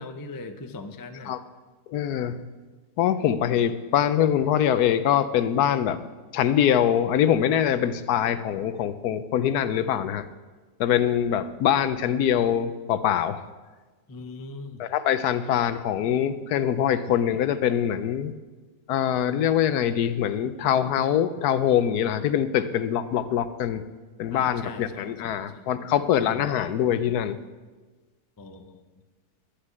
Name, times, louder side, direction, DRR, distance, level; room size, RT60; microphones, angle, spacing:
voice 1, 0.0-1.3 14.1-14.9 24.3-25.6 26.2-26.3 28.4-28.8, left 3 dB, 30° left, 7 dB, 0.3 m, -40 dB
voice 2, 1.9-2.4 3.0-6.0 6.3-10.3 10.8-13.4 14.8-18.3 18.9-23.8 24.2-27.4, left 9 dB, 80° left, 13 dB, 1.2 m, -23 dB
11.5 x 6.6 x 9.2 m, 1.3 s
omnidirectional pair, 1.7 m